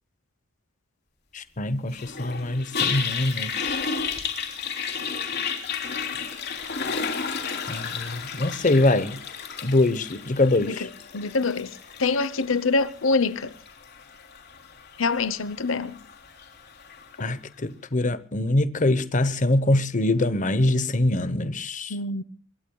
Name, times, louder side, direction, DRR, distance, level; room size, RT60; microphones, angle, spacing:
voice 1, 1.3-3.8 7.7-9.2 9.6-10.9 17.2-21.9, left 2 dB, 40° left, 1.0 m, -24 dB
Toilet flush, 1.9-17.1, left 6 dB, 55° left, 3.2 m, -33 dB
voice 2, 10.6-13.5 15.0-16.0 21.9-22.2, left 4 dB, 80° left, 0.8 m, -25 dB
25.0 x 22.0 x 2.3 m
head